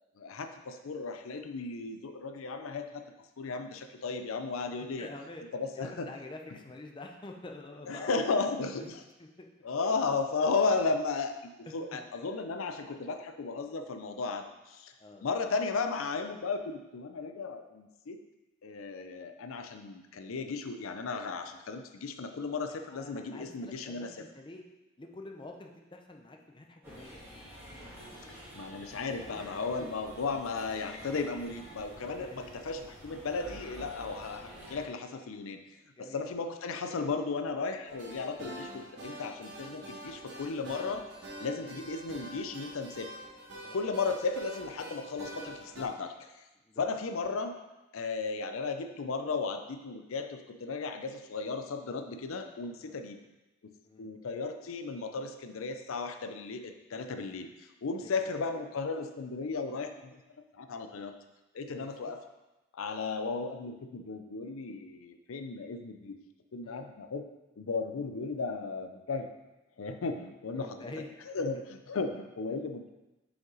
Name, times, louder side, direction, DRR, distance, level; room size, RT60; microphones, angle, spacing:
voice 1, 0.2-3.0 3.4-5.1 5.5-6.1 7.9-9.0 9.6-14.9 15.2-18.2 18.6-24.1 28.5-35.6 36.0-41.1 41.4-43.1 43.7-46.3 46.8-47.6 47.9-53.2 53.6-53.7 54.0-60.2 60.6-61.1 61.5-62.2 62.7-66.2 66.5-67.2 67.6-69.3 69.8-70.8 71.3-72.9, left 4 dB, 85° left, 7 dB, 0.5 m, -35 dB
voice 2, 4.8-5.4 5.7-8.4 8.7-8.9 9.2-9.5 11.9-12.1 15.0-15.3 22.7-24.6 25.0-27.3 27.7-27.8 29.8-29.9 32.1-32.4 35.9-36.2 43.6-43.9 46.6-46.8 52.8-53.0 53.8-54.1 58.0-58.1 61.7-62.1 66.6-66.9 70.5-71.1 71.4-71.5, left 2 dB, 25° left, 2 dB, 0.5 m, -47 dB
sound 1, 26.8-34.9, equal, 10° right, 2.1 m, -48 dB
sound 2, 37.9-45.8, right 1 dB, 60° right, 1.4 m, -46 dB
6.1 x 5.1 x 3.9 m, 1.0 s
head